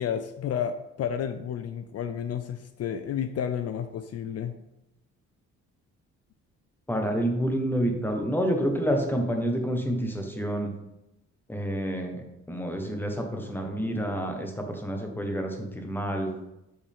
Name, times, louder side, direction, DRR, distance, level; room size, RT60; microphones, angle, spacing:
voice 1, 0.0-4.6, left 8 dB, 55° left, 9 dB, 0.5 m, -31 dB
voice 2, 6.9-10.7 11.5-12.2 12.5-16.3, equal, 5° left, 3 dB, 1.3 m, -28 dB
6.3 x 5.4 x 3.6 m, 0.89 s
cardioid pair, 90°, 30 cm